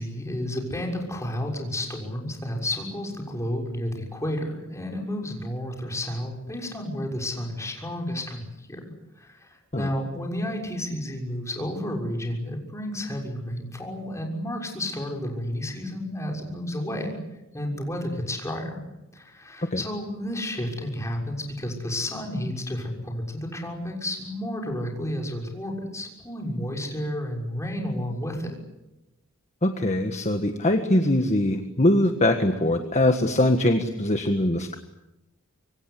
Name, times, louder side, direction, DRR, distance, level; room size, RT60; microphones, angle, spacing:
voice 1, 0.0-8.8 9.1-17.2 17.5-18.8 19.1-28.6, left 1 dB, 15° left, 0 dB, 6.4 m, -31 dB
voice 2, 29.6-34.8, left 1 dB, 35° left, 6 dB, 1.6 m, -22 dB
26.0 x 24.0 x 8.5 m, 0.94 s
head